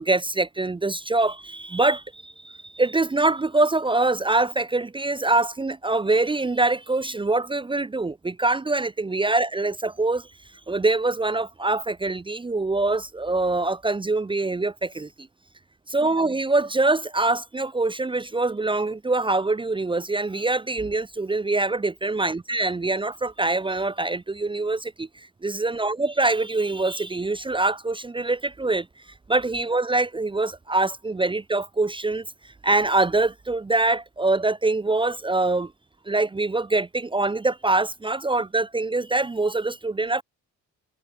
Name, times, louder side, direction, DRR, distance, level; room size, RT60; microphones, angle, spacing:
voice 1, 0.0-10.3 10.7-15.3 15.9-28.9 29.3-32.3 32.6-35.7 36.1-40.2, right 2 dB, 15° right, 0.7 m, -24 dB
cardioid pair, 90°, 30 cm